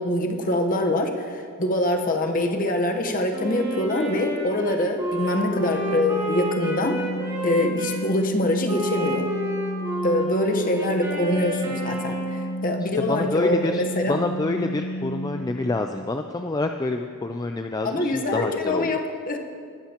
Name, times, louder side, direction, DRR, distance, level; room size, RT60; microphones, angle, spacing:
voice 1, 0.0-7.0 7.4-9.2 10.0-14.2 17.8-19.4, left 1 dB, 40° left, 3 dB, 1.1 m, -24 dB
Wind instrument woodwind instrument, 3.3-8.0 8.7-12.6, right 1 dB, 15° right, 2.1 m, -31 dB
Organ, 5.3-15.8, equal, 75° left, 1.1 m, -32 dB
voice 2, 12.8-18.9, left 2 dB, 15° left, 5 dB, 0.3 m, -27 dB
20.0 x 13.0 x 3.0 m, 2.2 s
head